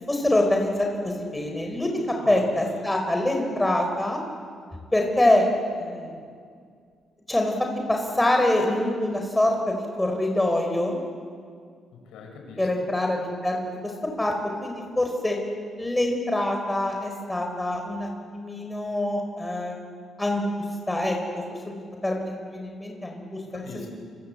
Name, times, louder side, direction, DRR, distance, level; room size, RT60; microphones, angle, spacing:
voice 1, 0.1-1.9 2.3-4.2 4.9-5.5 5.8-6.2 7.3-7.5 7.9-11.0 12.6-13.9 14.2-14.3 14.6-15.4 15.8-23.7, left 1 dB, 10° left, 2 dB, 4.7 m, -25 dB
voice 2, 2.2-2.8 11.9-13.0 23.5-23.9, left 4 dB, 85° left, 3 dB, 6.6 m, -43 dB
27.5 x 24.5 x 8.6 m, 2.1 s
cardioid pair, 90°, 0 cm